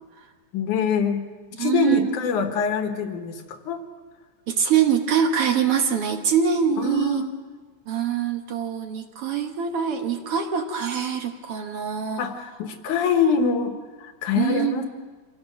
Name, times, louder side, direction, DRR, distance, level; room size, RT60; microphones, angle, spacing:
voice 1, 0.5-1.3 1.6-3.8 6.8-7.3 12.2-14.8, left 6 dB, 75° left, 6 dB, 3.0 m, -24 dB
voice 2, 1.6-2.1 4.5-7.2 7.9-12.2 14.3-14.8, right 8 dB, 55° right, 5 dB, 1.9 m, -24 dB
26.0 x 17.0 x 6.5 m, 1.4 s
omnidirectional pair, 3.6 m